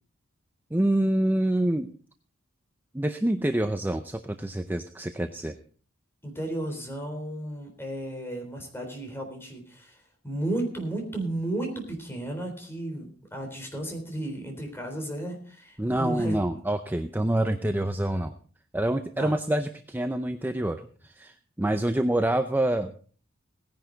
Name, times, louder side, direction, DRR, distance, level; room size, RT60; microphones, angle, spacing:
voice 1, 0.7-1.9 2.9-5.6 15.8-18.3 18.7-22.9, right 1 dB, 10° right, 8 dB, 0.6 m, -26 dB
voice 2, 6.2-10.0 10.2-16.6 19.2-19.3, right 1 dB, 10° left, 2 dB, 3.7 m, -34 dB
17.5 x 10.5 x 3.9 m, 0.43 s
head